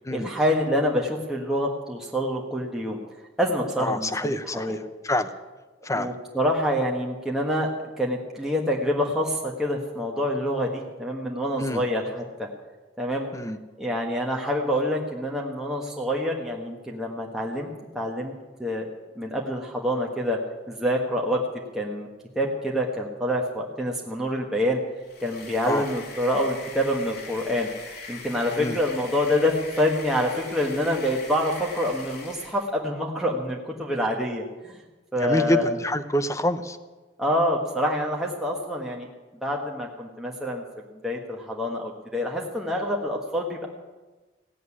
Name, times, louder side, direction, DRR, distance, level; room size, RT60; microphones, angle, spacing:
voice 1, 0.1-3.0 3.4-4.8 5.9-7.7 8.0-12.5 13.0-13.3 13.8-18.3 18.6-18.9 19.2-20.4 20.7-21.4 21.7-22.1 22.3-24.8 25.2-27.7 28.1-34.7 35.1-35.6 37.2-39.1 39.4-40.6 41.0-43.7, equal, 5° right, -2 dB, 1.3 m, -26 dB
voice 2, 3.8-5.3 5.8-6.1 11.6-11.8 13.3-13.6 25.7-25.8 28.5-28.8 35.1-36.8, left 1 dB, 15° left, 9 dB, 0.8 m, -27 dB
sound 1, 25.0-32.7, left 4 dB, 60° left, 2.5 m, -41 dB
16.5 x 7.8 x 9.8 m, 1.2 s
head